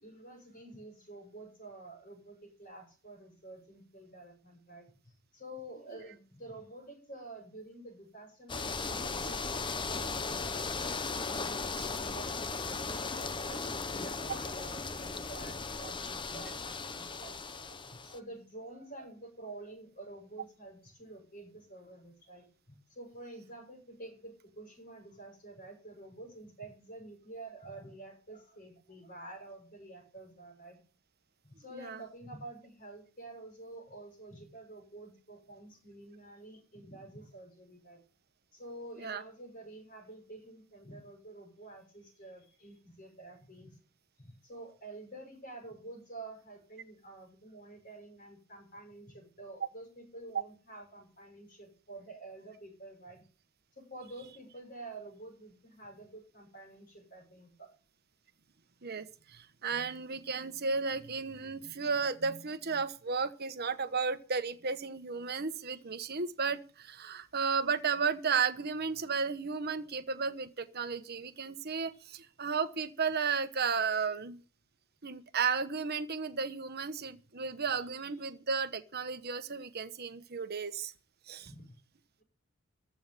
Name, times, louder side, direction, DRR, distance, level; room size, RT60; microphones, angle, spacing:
voice 1, 0.0-30.8 31.4-38.0 38.5-43.8 44.2-53.2 53.8-57.7 81.4-81.8, right 2 dB, 40° left, 6.6 m, -49 dB
sound 1, 8.5-18.2, left 4 dB, 20° left, 0.7 m, -37 dB
voice 2, 58.8-74.4 75.0-80.9 81.3-81.5, right 5 dB, 50° right, 1.2 m, -34 dB
14.5 x 5.7 x 8.9 m
head